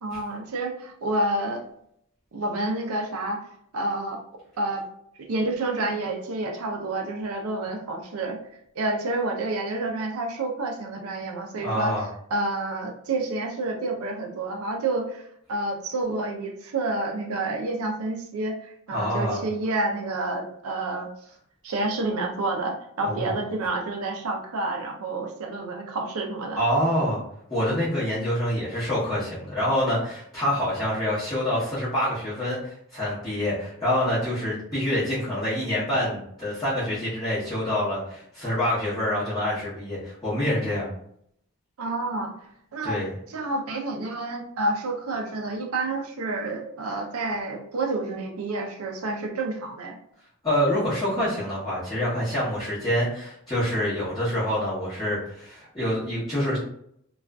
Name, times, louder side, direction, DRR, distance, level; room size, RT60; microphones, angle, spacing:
voice 1, 0.0-1.6 2.3-3.5 3.7-4.2 4.6-4.8 5.2-8.4 8.8-12.0 12.3-15.2 15.5-21.1 21.6-26.6 41.8-42.3 42.7-43.0 43.3-50.0, right 2 dB, 80° right, 2 dB, 0.5 m, -29 dB
voice 2, 11.6-12.1 18.9-19.4 23.0-23.3 26.6-27.2 27.5-40.9 42.8-43.1 50.4-56.6, equal, 20° left, -12 dB, 0.8 m, -26 dB
2.4 x 2.3 x 2.2 m, 0.71 s
head